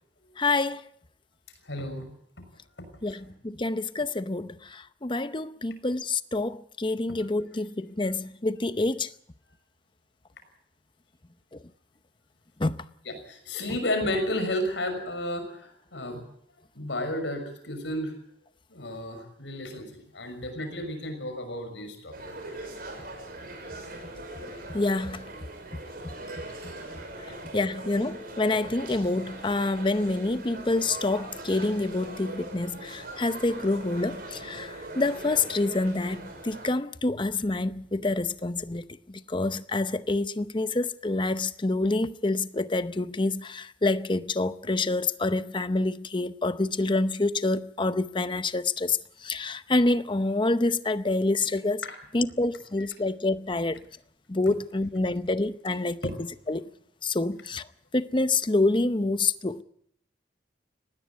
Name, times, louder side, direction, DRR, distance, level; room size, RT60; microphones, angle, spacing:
voice 1, 0.4-0.8 3.0-9.1 12.6-12.8 24.7-25.2 27.5-49.0 49.2-51.8 52.1-53.8 54.3-56.0 56.5-56.7 57.0-57.6 57.9-59.6, left 2 dB, 25° left, 0.7 m, -27 dB
voice 2, 1.6-2.1 2.8-3.2 13.0-16.2 16.7-18.1 18.7-22.3 51.8-52.0 56.0-56.1, left 1 dB, 75° left, 6.1 m, -32 dB
sound 1, 22.1-36.7, right 2 dB, 50° right, 5.7 m, -41 dB
20.0 x 17.0 x 8.1 m
head